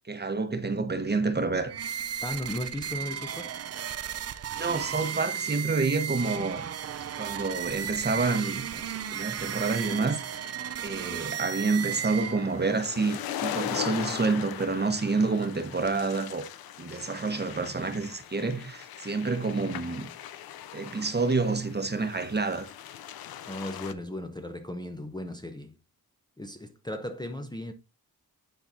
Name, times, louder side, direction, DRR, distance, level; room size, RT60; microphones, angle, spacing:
voice 1, 0.1-1.7 4.5-6.7 7.2-10.5 10.8-16.5 16.8-20.1 20.7-22.7, right 3 dB, 30° right, 1.0 m, -28 dB
sound 1, 1.7-12.7, right 8 dB, 45° right, 0.5 m, -35 dB
voice 2, 2.2-3.6 23.5-25.8 26.4-27.7, left 1 dB, 10° left, 0.7 m, -36 dB
sound 2, 9.9-23.9, left 11 dB, 90° left, 0.5 m, -40 dB
10.0 x 4.0 x 2.6 m
cardioid pair, 70°, 36 cm